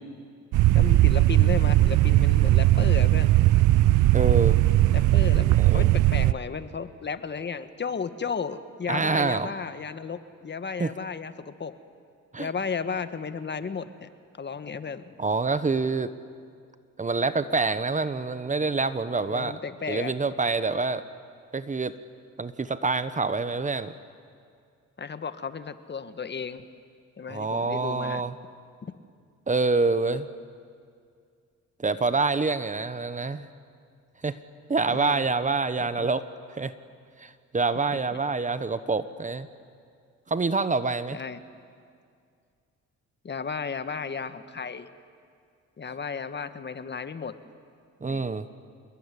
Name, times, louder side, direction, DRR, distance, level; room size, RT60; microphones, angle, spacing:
sound 1, 0.5-6.3, right 16 dB, 80° right, 0.6 m, -19 dB
voice 1, 0.7-3.4 4.9-11.8 12.4-14.1 14.4-15.1 19.3-20.1 25.0-26.7 27.2-28.2 28.8-28.9 34.9-35.2 35.8-36.1 37.9-38.2 41.1-41.4 43.2-44.9 45.8-47.4 48.0-48.2, left 5 dB, 35° left, 11 dB, 1.4 m, -34 dB
voice 2, 4.1-4.6 5.6-5.9 8.9-9.5 10.8-10.9 12.3-12.5 15.2-16.1 17.0-19.6 19.9-21.0 21.5-21.9 22.4-23.9 27.3-28.3 29.5-30.3 31.8-33.5 34.2-34.4 34.7-36.2 36.5-36.7 37.2-39.5 40.3-41.2 48.0-48.5, right 3 dB, 25° right, 13 dB, 1.1 m, -26 dB
27.5 x 21.5 x 9.9 m, 2.2 s
cardioid pair, 90°, 30 cm